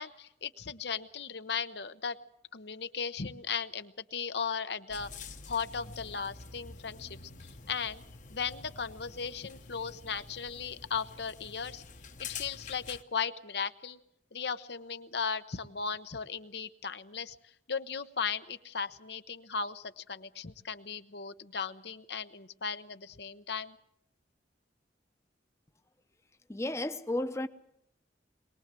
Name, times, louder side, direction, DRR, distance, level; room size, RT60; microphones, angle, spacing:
voice 1, 0.0-2.2 2.5-5.1 5.5-7.2 7.7-8.0 8.3-11.8 12.3-14.0 14.3-17.4 17.7-23.8, left 6 dB, 65° left, 0.9 m, -36 dB
sound 1, 4.9-13.0, left 5 dB, 45° left, 1.1 m, -47 dB
voice 2, 26.5-27.5, left 1 dB, 15° left, 0.8 m, -33 dB
22.5 x 19.5 x 7.6 m
head